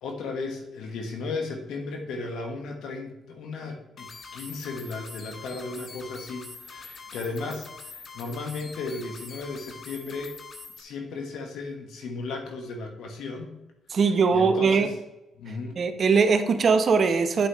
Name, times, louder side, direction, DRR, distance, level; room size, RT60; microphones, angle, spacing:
voice 1, 0.0-10.3 10.8-13.5 14.3-14.9 15.4-15.8, left 3 dB, 70° left, 3 dB, 1.5 m, -35 dB
sound 1, 4.0-10.8, left 4 dB, 55° left, 1.3 m, -44 dB
voice 2, 13.9-14.9 15.8-17.5, right 5 dB, 55° right, 8 dB, 0.9 m, -21 dB
8.7 x 8.0 x 3.1 m, 0.94 s
hypercardioid pair, 45°, 0 cm